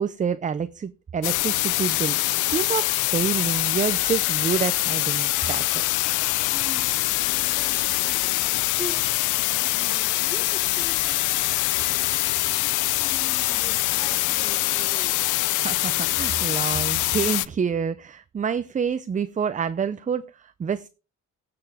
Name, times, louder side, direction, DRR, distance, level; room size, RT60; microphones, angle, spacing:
voice 1, 0.0-2.2 2.5-5.8 6.8-6.9 13.4-13.5 15.6-20.9, right 6 dB, 25° right, 0.5 m, -28 dB
sound 1, 1.2-17.5, left 18 dB, 85° left, 0.5 m, -24 dB
voice 2, 6.5-11.3 11.8-15.2, right 1 dB, 5° right, 2.8 m, -42 dB
15.5 x 6.8 x 3.5 m
cardioid pair, 90°, 30 cm